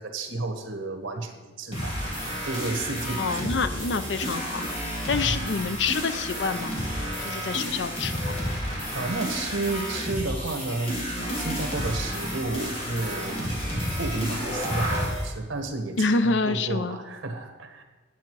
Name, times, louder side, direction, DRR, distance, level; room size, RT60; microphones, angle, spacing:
voice 1, 0.0-2.0 2.4-3.5 5.1-5.3 8.9-17.8, right 2 dB, 85° right, 5 dB, 1.4 m, -32 dB
sound 1, 1.7-15.3, equal, 30° left, 2.2 m, -31 dB
voice 2, 3.2-4.7 5.1-6.7 7.2-8.4 16.0-17.0, left 4 dB, 65° left, 11 dB, 0.6 m, -27 dB
9.3 x 8.4 x 4.7 m, 1.3 s
head